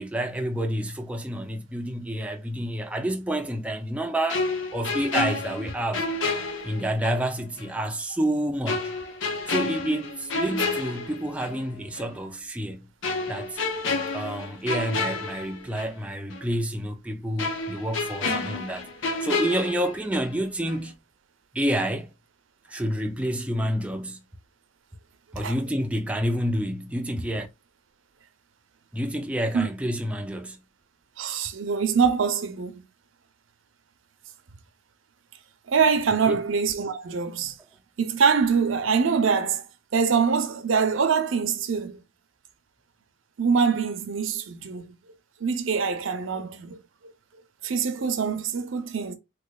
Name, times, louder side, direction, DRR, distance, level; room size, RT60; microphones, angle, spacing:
voice 1, 0.0-6.1 6.6-9.0 9.5-12.9 13.3-13.6 14.1-18.9 19.2-20.9 21.5-22.1 22.7-24.2 25.3-27.5 28.9-30.6 36.3-36.4, right 1 dB, 5° right, 0.3 m, -29 dB
sound 1, 4.3-7.2 7.6-7.7 8.7-11.6 11.9-12.1 13.0-16.0 16.3-16.4 17.4-20.4 20.7-20.9, left 3 dB, 80° left, 0.8 m, -30 dB
voice 2, 31.2-32.8 35.7-37.6 38.0-39.6 39.9-42.0 43.4-44.9 45.4-46.8 47.6-49.1, right 5 dB, 80° right, 0.5 m, -24 dB
3.5 x 3.0 x 2.2 m
head